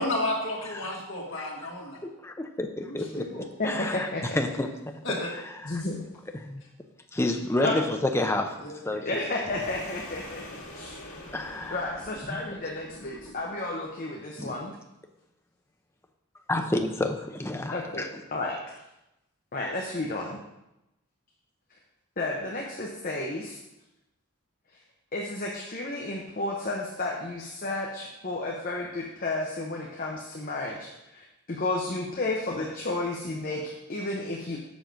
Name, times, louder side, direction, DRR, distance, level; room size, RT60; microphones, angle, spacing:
voice 1, 0.0-2.0 2.8-3.5 5.0-5.3 8.6-8.8 16.6-16.7, left 1 dB, 60° left, -3 dB, 2.0 m, -32 dB
voice 2, 2.2-4.1 4.4-4.7 5.6-5.8 6.4-6.6 7.1-8.6 8.9-9.2 11.3-11.9 14.4-14.5 16.5-18.1, left 1 dB, 10° left, 4 dB, 0.6 m, -29 dB
voice 3, 3.6-4.4 5.6-6.0 7.6-7.8 9.0-10.9 11.7-14.7 17.7-18.6 19.5-20.4 22.2-23.6 25.1-34.6, left 2 dB, 40° left, -1 dB, 0.9 m, -32 dB
sound 1, 9.4-13.8, left 1 dB, 85° left, 2.0 m, -45 dB
7.2 x 6.1 x 5.1 m, 0.91 s
head